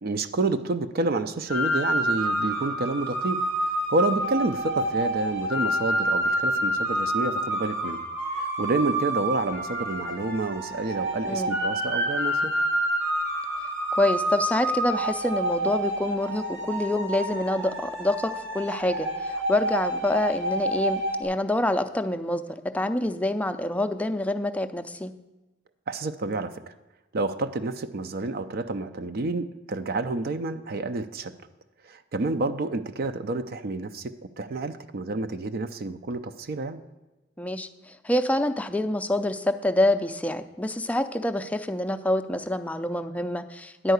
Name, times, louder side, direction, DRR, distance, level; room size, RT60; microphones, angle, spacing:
voice 1, 0.0-3.4 3.9-8.0 8.4-12.5 25.9-26.7 27.1-31.3 31.8-36.8, right 2 dB, 50° right, 10 dB, 0.5 m, -29 dB
sound 1, 1.5-21.2, right 1 dB, 90° right, 3.2 m, -28 dB
voice 2, 13.9-25.1 37.4-43.9, left 1 dB, 5° left, 8 dB, 0.4 m, -26 dB
10.0 x 4.7 x 8.0 m, 1.1 s
head